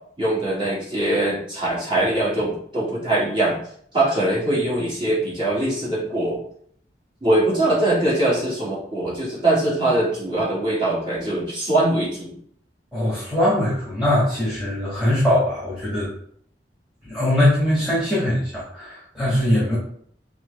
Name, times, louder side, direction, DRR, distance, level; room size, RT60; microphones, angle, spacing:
voice 1, 0.2-3.6 3.9-6.4 7.2-12.3, right 1 dB, 30° right, -7 dB, 1.7 m, -22 dB
voice 2, 12.9-16.1 17.0-19.8, left 1 dB, 5° right, -10 dB, 1.6 m, -21 dB
6.0 x 2.2 x 3.3 m, 0.62 s
head